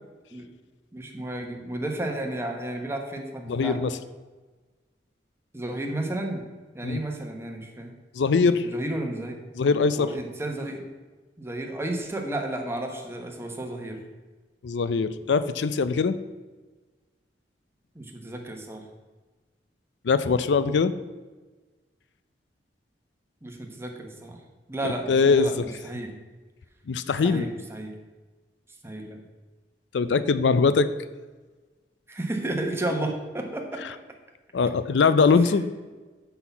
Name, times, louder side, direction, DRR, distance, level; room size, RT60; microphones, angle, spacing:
voice 1, 0.9-3.8 5.5-6.4 6.7-7.9 8.4-9.4 10.0-10.8 11.4-14.0 17.9-18.8 23.4-24.4 24.7-26.2 27.2-27.9 28.8-29.2 32.1-33.8, right 1 dB, 15° right, 2 dB, 1.1 m, -32 dB
voice 2, 3.5-4.0 6.8-7.0 8.1-8.7 9.5-10.1 14.6-16.2 20.0-20.9 24.8-25.6 26.9-27.5 29.9-30.9 34.5-35.6, left 4 dB, 85° left, 13 dB, 0.4 m, -22 dB
6.2 x 5.7 x 6.9 m, 1.3 s
head